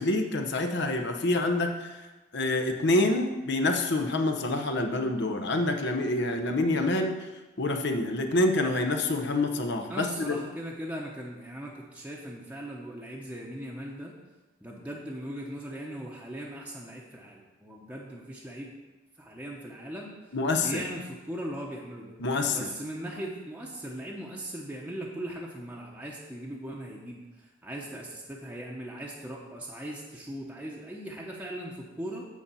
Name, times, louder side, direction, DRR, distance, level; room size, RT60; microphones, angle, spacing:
voice 1, 0.0-2.1 2.3-7.2 7.6-10.4 20.3-20.8 22.2-22.7, left 2 dB, 60° left, 5 dB, 0.9 m, -27 dB
voice 2, 9.9-14.1 14.6-18.7 19.2-20.1 20.6-22.1 22.5-27.2 27.6-32.3, right 1 dB, 10° right, -3 dB, 0.9 m, -39 dB
8.3 x 4.2 x 7.0 m, 1.1 s
head